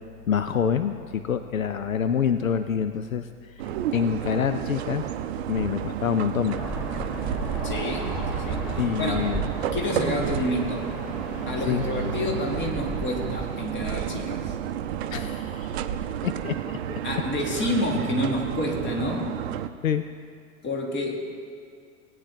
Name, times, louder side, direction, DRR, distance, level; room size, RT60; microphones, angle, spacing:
voice 1, 0.3-3.3 3.9-5.0 5.5-6.6 8.8-9.5 11.7-11.8 15.1-15.8 16.2-17.0 19.8-20.0, left 7 dB, 85° left, 10 dB, 0.5 m, -26 dB
sound 1, 3.6-19.7, right 10 dB, 55° right, 0.5 m, -31 dB
sound 2, 6.5-13.5, right 1 dB, ahead, 1.7 m, -34 dB
voice 2, 7.6-9.3 9.7-10.9 11.5-14.5 17.0-19.4 20.6-21.3, left 1 dB, 30° left, 1 dB, 1.7 m, -29 dB
17.5 x 9.0 x 2.7 m, 2.2 s
figure-of-eight pair, 85°, 40 cm